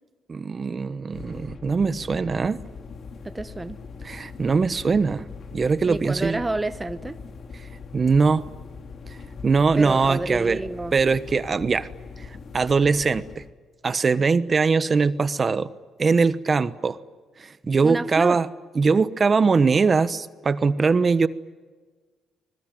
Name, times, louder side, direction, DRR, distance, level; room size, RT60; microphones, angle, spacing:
voice 1, 0.3-2.6 4.0-5.3 5.5-6.4 7.9-8.5 9.1-9.2 9.4-10.6 10.9-11.9 12.2-12.3 12.5-13.4 13.8-15.7 16.0-17.0 17.4-18.5 18.8-21.3, right 4 dB, 35° right, 15 dB, 1.1 m, -21 dB
sound 1, 1.1-13.5, left 5 dB, 55° left, 2.4 m, -41 dB
voice 2, 3.2-3.8 5.9-7.2 9.8-10.9 17.8-18.4, right 2 dB, 15° right, 12 dB, 0.9 m, -29 dB
25.5 x 21.5 x 9.2 m, 1.4 s
cardioid pair, 90°, 0 cm